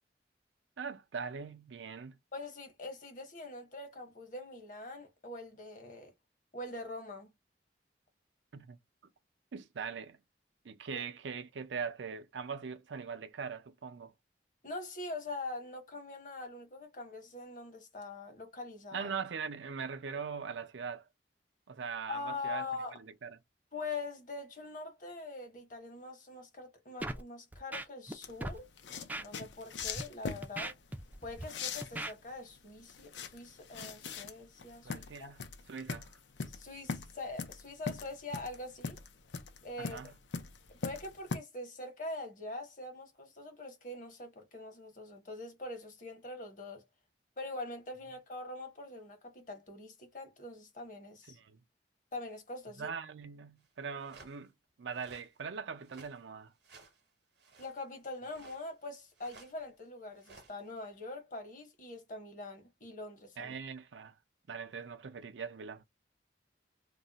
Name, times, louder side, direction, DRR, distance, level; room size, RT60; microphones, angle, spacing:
voice 1, 0.8-2.2 8.5-8.8 9.5-10.2 10.6-14.1 18.9-21.0 21.7-22.7 22.9-23.4 34.8-35.4 35.7-36.1 39.8-40.1 51.3-51.6 52.8-54.5 54.8-56.5 63.4-64.1 64.5-65.8, right 6 dB, 90° right, 0.5 m, -41 dB
voice 2, 2.3-6.1 6.5-7.3 10.9-11.0 14.6-19.1 22.1-22.9 23.7-30.8 31.2-35.3 36.5-39.0 39.6-40.0 40.8-46.8 47.4-51.4 52.1-52.9 57.6-63.6, left 2 dB, 45° left, 1.0 m, -43 dB
Scratching (performance technique), 27.0-27.2 27.5-28.1 28.4-28.6 29.1-29.2 29.8-30.0 30.4-31.4 31.8-32.1, right 1 dB, 10° right, 0.3 m, -39 dB
sound 1, 28.2-41.4, left 5 dB, 90° left, 0.5 m, -41 dB
sound 2, 53.6-53.7 54.0-54.4 54.9-55.3 55.8-56.2 56.6-57.0 57.4-57.8 58.3-58.8 59.2-59.7 60.2-60.8, right 4 dB, 70° right, 0.9 m, -57 dB
2.4 x 2.1 x 3.8 m
head